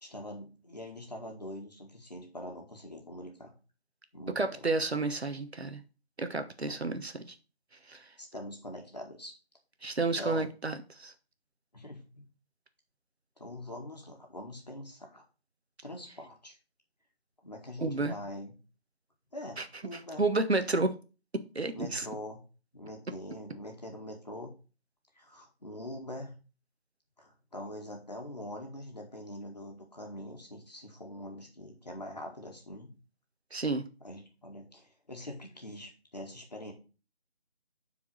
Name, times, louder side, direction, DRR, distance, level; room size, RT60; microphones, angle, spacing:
voice 1, 0.0-3.5 4.1-4.6 6.3-6.8 8.2-9.3 10.1-10.5 11.7-12.3 13.4-15.2 15.8-16.5 17.4-18.5 19.3-20.2 21.7-22.4 22.7-24.5 25.2-26.4 27.2-33.0 34.0-36.7, left 1 dB, 40° left, 2.0 m, -44 dB
voice 2, 4.3-5.8 6.2-7.3 7.9-8.0 9.8-11.1 17.8-18.1 19.6-19.7 20.2-21.0 21.5-22.1 33.5-33.9, right 3 dB, 75° right, 1.3 m, -30 dB
7.1 x 4.7 x 6.4 m
figure-of-eight pair, 175°, 32 cm